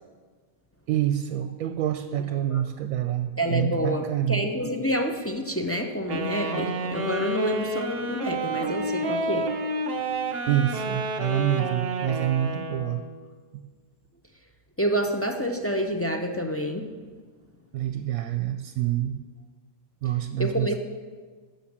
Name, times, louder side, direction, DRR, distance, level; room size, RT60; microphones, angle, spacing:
voice 1, 0.9-4.5 10.5-13.0 13.5-13.6 17.7-19.2 20.0-20.8, right 12 dB, 75° right, 10 dB, 1.0 m, -27 dB
voice 2, 3.4-9.5 14.8-16.9 20.4-20.8, equal, 20° left, 2 dB, 0.3 m, -28 dB
Wind instrument woodwind instrument, 6.1-13.0, right 2 dB, 45° right, 1.0 m, -30 dB
13.5 x 5.7 x 7.3 m, 1.5 s
omnidirectional pair, 1.5 m